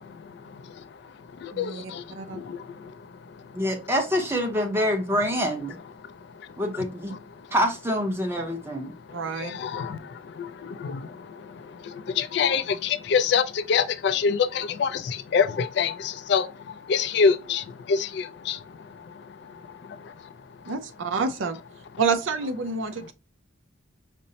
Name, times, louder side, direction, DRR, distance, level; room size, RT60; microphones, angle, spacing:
voice 1, 0.0-3.9 6.0-7.5 8.4-8.5 8.9-20.8, left 6 dB, 55° left, 0.3 m, -28 dB
voice 2, 1.5-1.8 2.1-2.4 9.1-9.5 20.7-21.6 22.0-23.1, right 5 dB, 70° right, 0.5 m, -28 dB
voice 3, 3.5-5.8 6.6-7.1 7.5-8.9, equal, 10° right, 0.7 m, -26 dB
5.1 x 2.0 x 2.7 m
head